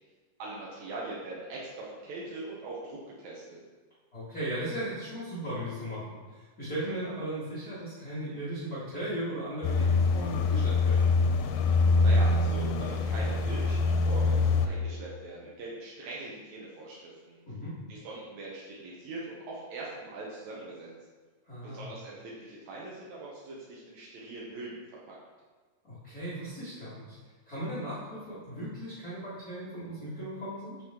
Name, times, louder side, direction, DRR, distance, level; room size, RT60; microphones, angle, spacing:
voice 1, 0.4-3.6 12.0-17.4 17.9-20.9 21.6-25.2, right 2 dB, 75° right, -5 dB, 1.7 m, -41 dB
voice 2, 4.1-11.1 17.5-17.7 21.4-21.9 25.8-27.2 27.4-30.8, right 1 dB, 35° left, -12 dB, 1.4 m, -37 dB
sound 1, 9.6-14.7, left 3 dB, 90° left, 2.6 m, -24 dB
7.9 x 4.5 x 3.7 m, 1.4 s
omnidirectional pair, 4.5 m